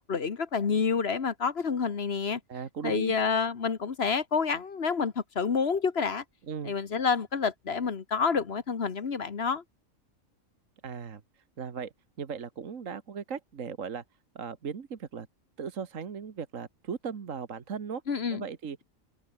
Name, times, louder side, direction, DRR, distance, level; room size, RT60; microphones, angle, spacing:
voice 1, 0.0-2.4 2.8-6.2 6.6-9.6 18.1-18.4, left 5 dB, 50° left, 1.5 m, -28 dB
voice 2, 2.5-3.1 6.5-6.7 10.8-11.2 11.6-11.9 12.2-14.0 14.4-15.3 15.6-18.0 18.3-18.8, right 6 dB, 70° right, 1.8 m, -37 dB
open air
omnidirectional pair, 1.4 m